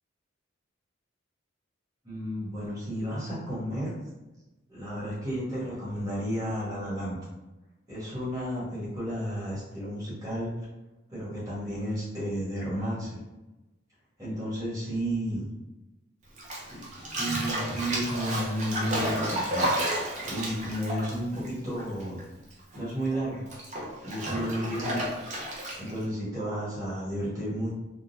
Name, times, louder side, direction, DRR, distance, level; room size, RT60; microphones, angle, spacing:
voice 1, 2.0-3.9 4.7-7.2 7.9-10.5 11.1-13.2 14.2-15.5 16.7-16.8 17.1-19.7 20.3-22.2 22.7-23.4 24.0-25.0 25.8-27.7, equal, 15° right, -9 dB, 1.3 m, -32 dB
Bathtub (filling or washing), 16.4-22.2 22.5-26.0, right 1 dB, 40° right, 0.6 m, -32 dB
3.8 x 2.2 x 2.7 m, 1.0 s
head